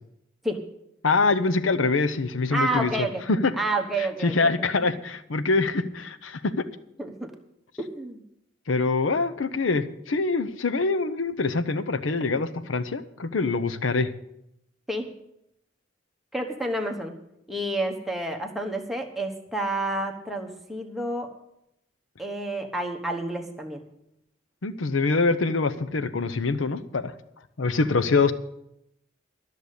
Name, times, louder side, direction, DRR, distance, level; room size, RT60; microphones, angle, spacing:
voice 1, 1.0-3.5 4.2-6.6 8.7-14.1 24.6-27.1 27.6-28.3, left 3 dB, 85° left, 13 dB, 0.7 m, -24 dB
voice 2, 2.5-3.2 3.6-4.5 7.0-7.3 7.8-8.2 14.9-15.1 16.3-17.1 17.5-21.3 22.2-23.8, right 1 dB, ahead, 2 dB, 1.1 m, -29 dB
13.0 x 6.6 x 8.2 m, 0.81 s
head